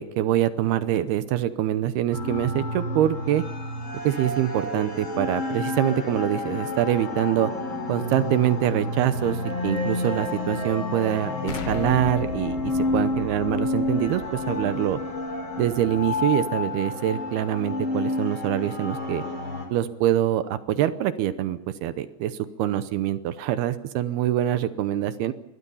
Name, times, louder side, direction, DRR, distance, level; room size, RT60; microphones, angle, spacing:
voice 1, 0.0-3.4 4.0-7.5 7.9-15.0 15.6-19.2 19.7-25.3, right 12 dB, 75° right, 12 dB, 2.6 m, -25 dB
sound 1, 2.1-19.6, left 2 dB, 25° left, 4.9 m, -30 dB
Explosion, 11.5-16.3, left 5 dB, 60° left, 3.5 m, -37 dB
25.5 x 21.0 x 5.6 m, 0.92 s
omnidirectional pair, 5.1 m